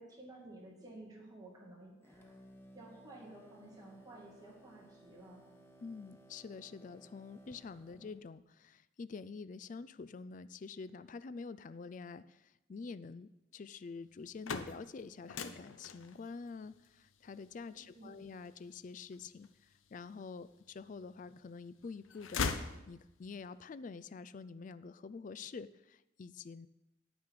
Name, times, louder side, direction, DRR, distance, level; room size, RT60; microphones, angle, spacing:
voice 1, 0.0-2.4 2.7-5.8 17.7-18.2, right 2 dB, 20° right, -3 dB, 2.4 m, -53 dB
sound 1, 2.0-8.3, right 1 dB, 10° left, 1.0 m, -60 dB
voice 2, 5.8-26.7, left 4 dB, 40° left, 15 dB, 0.3 m, -47 dB
sound 2, 14.1-20.1 20.7-21.5 21.8-23.4, left 5 dB, 85° left, 0.7 m, -42 dB
9.4 x 9.3 x 4.8 m, 0.93 s
head